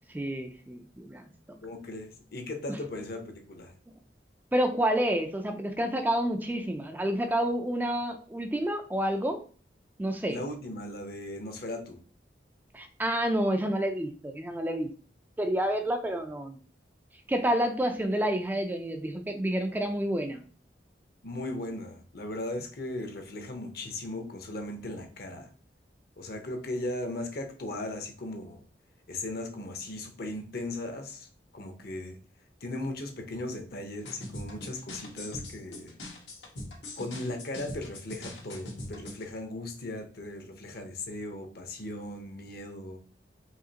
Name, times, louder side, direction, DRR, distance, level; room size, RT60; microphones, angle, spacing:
voice 1, 0.1-1.3 2.7-2.8 4.5-9.4 10.0-10.4 12.7-14.9 15.4-16.6 17.3-20.5, right 1 dB, 10° right, 5 dB, 0.4 m, -29 dB
voice 2, 1.6-3.7 10.3-12.0 21.2-25.5 26.2-28.6 29.1-31.3 31.5-32.2 32.6-35.9 37.0-43.0, left 1 dB, 60° left, 5 dB, 0.9 m, -37 dB
sound 1, 34.0-39.3, left 1 dB, 90° left, 1.4 m, -42 dB
4.9 x 2.9 x 2.8 m, 0.40 s
head